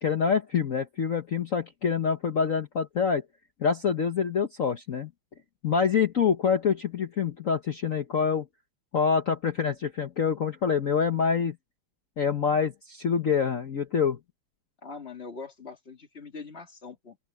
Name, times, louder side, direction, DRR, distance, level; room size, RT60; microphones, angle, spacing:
voice 1, 0.0-3.2 3.6-5.1 5.6-8.5 8.9-11.6 12.2-14.2, left 6 dB, 50° left, 1.2 m, -26 dB
voice 2, 14.8-17.2, left 4 dB, 30° left, 2.4 m, -42 dB
omnidirectional pair, 2.3 m